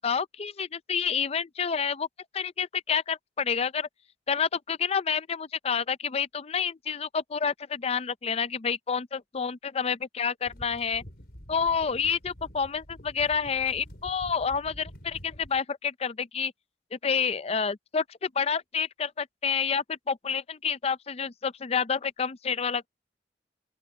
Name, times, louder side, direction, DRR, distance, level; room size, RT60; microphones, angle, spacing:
voice 1, 0.0-2.1 2.3-3.9 4.3-11.0 11.5-16.5 16.9-22.9, left 6 dB, 35° left, 0.5 m, -29 dB
sound 1, 10.4-15.6, equal, 60° left, 5.5 m, -47 dB
open air
head